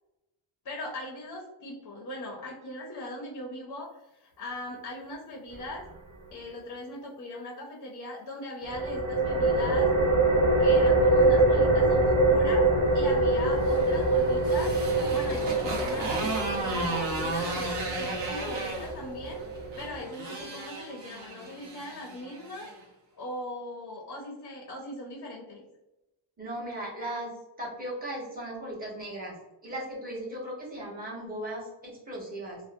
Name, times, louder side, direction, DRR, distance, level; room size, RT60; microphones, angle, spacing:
voice 1, 0.6-5.8 6.3-9.9 10.6-12.0 12.3-12.7 12.9-14.7 15.1-19.4 19.8-22.7 23.1-25.6, left 1 dB, 40° left, -2 dB, 0.5 m, -39 dB
sound 1, 8.6-20.0, right 2 dB, 80° right, 1.1 m, -24 dB
Motorcycle, 13.4-22.8, right 2 dB, 60° right, 0.7 m, -35 dB
voice 2, 26.4-27.3 27.6-29.3 29.6-32.6, right 1 dB, 20° right, -5 dB, 0.8 m, -37 dB
2.6 x 2.0 x 2.5 m, 0.97 s
wide cardioid pair, 145°, 49 cm